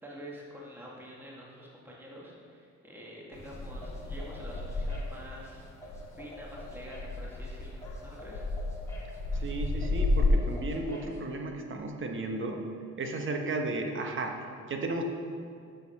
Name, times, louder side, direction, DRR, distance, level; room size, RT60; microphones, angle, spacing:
voice 1, 0.0-5.7 6.2-8.5, equal, 5° right, -4 dB, 1.7 m, -47 dB
sound 1, 3.3-10.3, left 3 dB, 85° left, 1.4 m, -33 dB
sound 2, 3.3-11.2, left 1 dB, 10° left, 2.0 m, -48 dB
voice 2, 9.3-12.6 13.0-14.3 14.7-15.0, right 2 dB, 40° right, 3 dB, 1.2 m, -34 dB
7.0 x 6.5 x 5.5 m, 2.4 s
cardioid pair, 90°, 30 cm